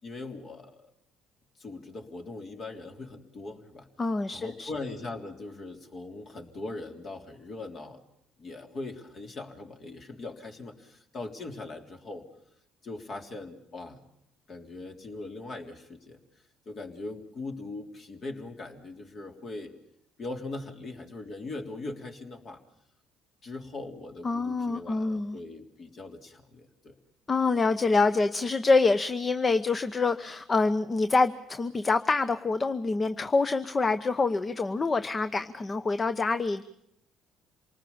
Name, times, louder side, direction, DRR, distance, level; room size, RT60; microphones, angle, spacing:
voice 1, 0.0-0.9 1.6-3.9 4.3-8.1 8.4-12.2 12.8-14.0 14.5-16.2 16.6-19.7 20.2-22.6 23.4-26.9, left 2 dB, 50° left, 4 dB, 3.4 m, -40 dB
voice 2, 4.0-4.7 24.2-25.4 27.3-36.6, left 3 dB, 30° left, 11 dB, 0.9 m, -26 dB
27.0 x 19.5 x 7.2 m, 0.79 s
hypercardioid pair, 60°, 0 cm